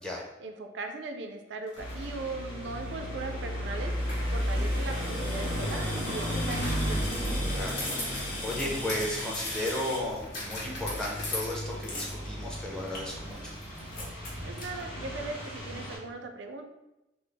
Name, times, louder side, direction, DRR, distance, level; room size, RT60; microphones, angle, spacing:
voice 1, 0.4-3.9 4.3-7.1 14.4-16.6, right 3 dB, 85° right, 5 dB, 0.4 m, -39 dB
sound 1, 1.7-2.0 4.1-4.2 6.5-11.6, left 2 dB, 70° left, 1.2 m, -39 dB
sound 2, 1.8-16.0, equal, 25° left, 1.1 m, -34 dB
sound 3, 3.9-14.8, left 1 dB, 50° left, 0.8 m, -41 dB
voice 2, 7.5-13.6, left 1 dB, 5° left, -3 dB, 0.6 m, -35 dB
3.8 x 2.0 x 3.3 m, 0.94 s
head